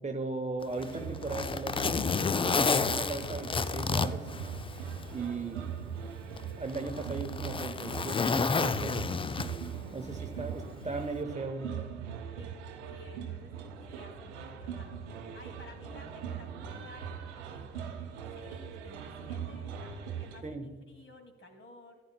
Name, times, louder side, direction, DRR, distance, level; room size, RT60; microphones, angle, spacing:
voice 1, 0.0-4.3 5.1-5.7 6.6-9.0 9.9-11.9 20.4-20.7, right 3 dB, 20° right, 5 dB, 1.0 m, -37 dB
Zipper (clothing), 0.6-5.1 5.5-5.6 6.4-9.8 11.0-11.2, left 5 dB, 15° left, 0.4 m, -30 dB
sound 1, 0.8-20.4, right 7 dB, 80° right, 0.8 m, -41 dB
voice 2, 12.9-22.0, left 1 dB, 35° left, 4 dB, 2.3 m, -54 dB
14.5 x 10.5 x 2.2 m, 1.5 s
figure-of-eight pair, 40°, 34 cm